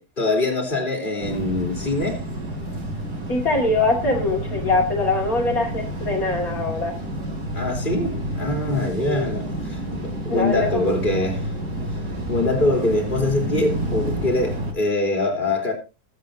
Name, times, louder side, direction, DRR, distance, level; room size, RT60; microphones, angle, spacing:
voice 1, 0.0-2.2 7.5-11.5 12.3-15.7, left 2 dB, 30° left, 3.4 m, -23 dB
sound 1, 1.2-14.7, equal, 80° right, 4.7 m, -29 dB
voice 2, 3.3-7.0 9.0-9.3 10.3-11.3, left 2 dB, 60° left, 2.6 m, -23 dB
21.5 x 8.2 x 2.7 m
omnidirectional pair, 1.7 m